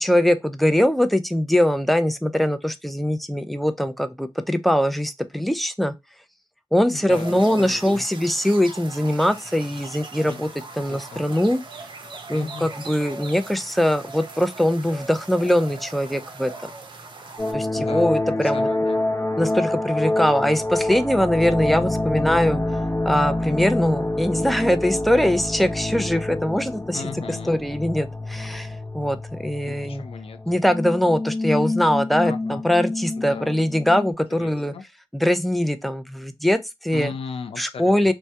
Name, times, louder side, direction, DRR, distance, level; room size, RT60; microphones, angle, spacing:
voice 1, 0.0-5.9 6.7-10.5 10.7-11.6 12.3-16.7 17.5-18.7 19.4-22.6 23.0-27.0 27.3-28.7 28.9-30.0 30.5-34.7 35.1-37.1 37.6-38.1, equal, ahead, 0.4 m, -22 dB
voice 2, 6.9-8.0 10.2-10.4 10.9-11.2 12.3-12.7 17.7-18.1 18.4-19.0 26.9-27.6 29.6-30.4 32.2-32.6 33.2-33.5 34.3-34.8 36.9-38.1, left 6 dB, 70° left, 0.4 m, -37 dB
sound 1, 7.1-17.5, right 3 dB, 50° right, 0.6 m, -40 dB
sound 2, 17.4-34.1, left 2 dB, 30° left, 0.8 m, -27 dB
2.2 x 2.2 x 2.7 m
cardioid pair, 50°, 10 cm